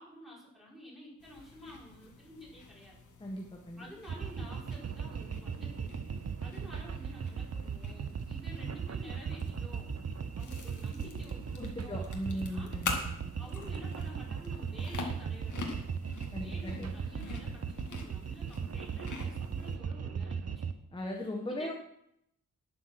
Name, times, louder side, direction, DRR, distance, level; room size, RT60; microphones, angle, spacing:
voice 1, 0.0-3.0 3.8-5.9 6.4-9.9 10.3-12.7 13.4-15.9 16.3-20.7 21.5-21.7, equal, ahead, -5 dB, 5.2 m, -51 dB
sound 1, 1.2-19.8, left 4 dB, 65° left, 2.3 m, -46 dB
voice 2, 3.2-3.9 11.6-13.2 16.3-16.9 20.9-21.7, left 1 dB, 15° left, 1 dB, 1.4 m, -38 dB
sound 2, 4.1-20.7, right 6 dB, 50° right, 1.0 m, -38 dB
12.0 x 10.5 x 6.0 m, 0.76 s
wide cardioid pair, 155°, 33 cm